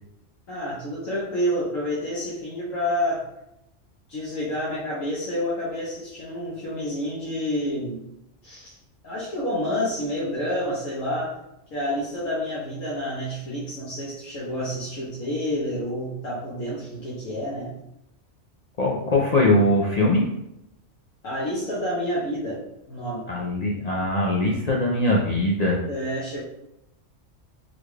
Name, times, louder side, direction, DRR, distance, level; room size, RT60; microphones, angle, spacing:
voice 1, 0.5-3.2 4.1-8.0 8.4-8.8 9.0-11.4 11.7-17.7 21.2-22.6 22.9-23.2 25.9-26.4, equal, 85° left, -8 dB, 1.3 m, -29 dB
voice 2, 18.8-20.2 23.3-25.8, left 1 dB, 70° left, -3 dB, 0.3 m, -21 dB
4.0 x 2.3 x 3.2 m, 0.84 s
omnidirectional pair, 1.3 m